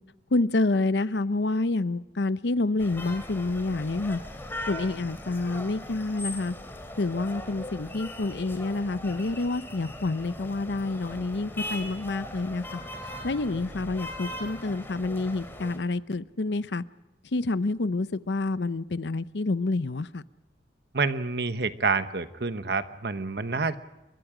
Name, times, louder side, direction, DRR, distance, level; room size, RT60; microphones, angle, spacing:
voice 1, 0.3-4.2 4.7-6.5 7.0-12.8 13.2-16.8 17.3-20.2, left 2 dB, 80° left, 0.7 m, -28 dB
sound 1, 2.8-15.8, left 1 dB, 15° left, 3.2 m, -39 dB
voice 2, 20.9-23.8, right 4 dB, 65° right, 1.1 m, -28 dB
29.5 x 23.0 x 5.0 m
head